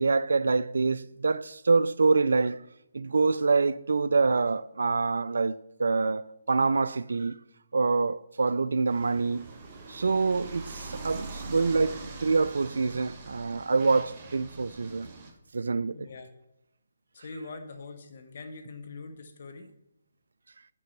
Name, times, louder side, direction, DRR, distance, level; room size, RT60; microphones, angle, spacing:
voice 1, 0.0-2.6 2.9-7.4 7.7-9.5 9.9-15.1 15.5-16.1, right 4 dB, 70° right, 0.4 m, -26 dB
sound 1, 8.8-15.3, right 3 dB, 30° right, 1.2 m, -43 dB
voice 2, 15.9-16.3 17.1-19.7, left 3 dB, 50° left, 1.0 m, -43 dB
6.5 x 5.4 x 7.0 m
figure-of-eight pair, 145°, 0 cm